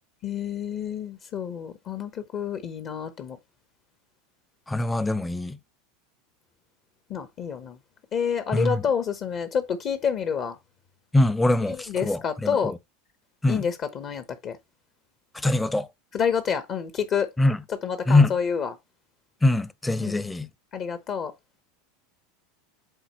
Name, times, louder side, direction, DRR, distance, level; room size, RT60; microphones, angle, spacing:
voice 1, 0.2-3.4 7.1-7.8 8.1-10.6 11.7-12.7 13.5-14.6 16.1-17.3 17.8-18.7 20.0-20.2 20.7-21.3, left 7 dB, 45° left, 1.0 m, -28 dB
voice 2, 4.7-5.6 8.5-8.8 11.1-12.7 13.4-13.7 15.3-15.9 17.4-17.6 18.1-18.3 19.4-20.5, left 2 dB, 10° left, 0.7 m, -23 dB
7.8 x 4.3 x 3.0 m
hypercardioid pair, 105°, 0 cm